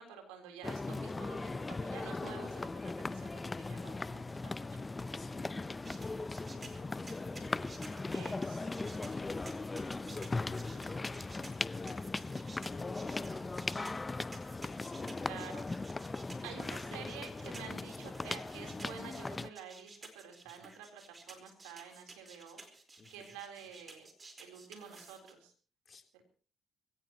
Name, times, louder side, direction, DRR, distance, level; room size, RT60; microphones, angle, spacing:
voice 1, 0.0-4.8 8.1-8.7 15.3-15.6 16.4-22.6 23.1-24.1 24.4-25.5, right 7 dB, 85° right, 4 dB, 3.8 m, -49 dB
sound 1, 0.6-19.5, left 3 dB, 25° left, 0.6 m, -39 dB
voice 2, 5.1-7.6 8.3-10.3 10.6-13.5 14.6-15.6 20.6-20.7 23.0-23.4 25.9-26.2, left 4 dB, 40° left, 5 dB, 3.5 m, -54 dB
sound 2, 5.8-25.3, right 3 dB, 30° right, 4.4 m, -54 dB
23.5 x 16.5 x 3.0 m, 0.38 s
hypercardioid pair, 50°, 0 cm